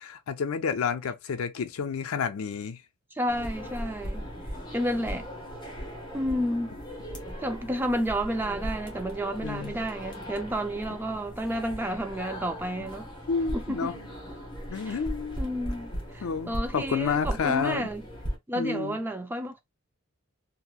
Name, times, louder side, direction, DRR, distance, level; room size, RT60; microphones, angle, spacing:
voice 1, 0.1-2.8 9.4-9.7 12.8-12.9 13.3-13.9 14.7-15.4 16.2-17.9 18.5-19.0, left 6 dB, 75° left, 0.4 m, -30 dB
voice 2, 3.1-4.3 4.7-5.3 6.1-6.8 7.4-13.1 13.5-13.9 14.7-15.0 15.4-18.0 18.5-19.6, equal, 10° right, 0.4 m, -31 dB
sound 1, 3.3-18.3, equal, 20° left, 0.9 m, -38 dB
2.9 x 2.6 x 2.3 m
head